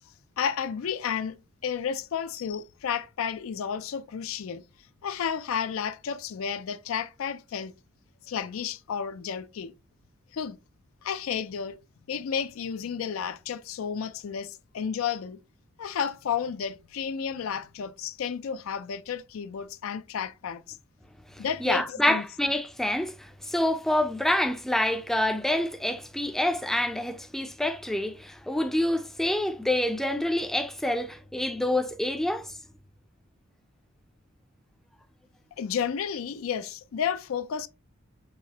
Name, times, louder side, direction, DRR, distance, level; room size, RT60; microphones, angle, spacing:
voice 1, 0.4-4.6 5.0-7.7 8.3-9.7 10.3-10.6 11.0-11.8 12.1-15.4 15.8-20.8 21.4-22.2 35.6-37.7, left 7 dB, 80° left, 0.4 m, -32 dB
voice 2, 21.4-32.5, left 1 dB, ahead, 0.4 m, -27 dB
4.7 x 2.8 x 2.8 m
head